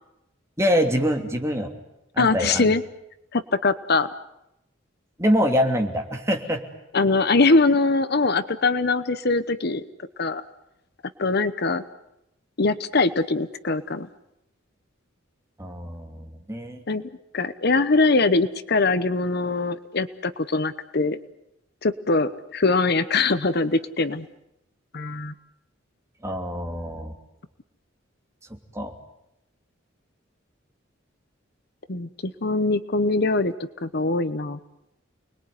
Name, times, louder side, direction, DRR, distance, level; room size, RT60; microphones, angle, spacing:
voice 1, 0.6-1.7 2.1-2.7 5.2-6.6 15.6-16.8 26.2-27.1 28.7-28.9, equal, 15° right, 3 dB, 2.9 m, -24 dB
voice 2, 2.2-2.8 3.3-4.1 6.9-9.8 10.2-10.4 11.2-11.8 12.6-14.1 16.9-17.1 17.3-21.2 21.8-24.3 24.9-25.3 31.9-33.5 33.8-34.6, left 3 dB, 55° left, 13 dB, 1.0 m, -22 dB
29.5 x 21.0 x 9.7 m, 0.87 s
head